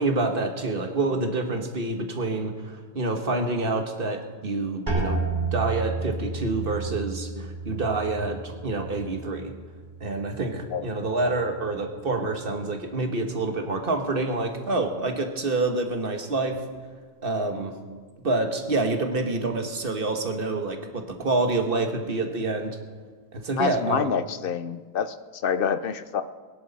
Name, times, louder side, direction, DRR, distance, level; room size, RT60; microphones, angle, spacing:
voice 1, 0.0-9.5 10.0-16.6 17.2-17.8 18.2-22.8 23.3-24.1, right 2 dB, 60° right, 5 dB, 1.5 m, -27 dB
sound 1, 4.9-10.5 10.8-11.5 12.1-12.5, right 4 dB, 45° right, 2.8 m, -32 dB
voice 2, 23.6-25.1 25.4-26.2, left 7 dB, 65° left, 12 dB, 0.8 m, -27 dB
21.5 x 11.0 x 4.0 m, 1.5 s
omnidirectional pair, 1.1 m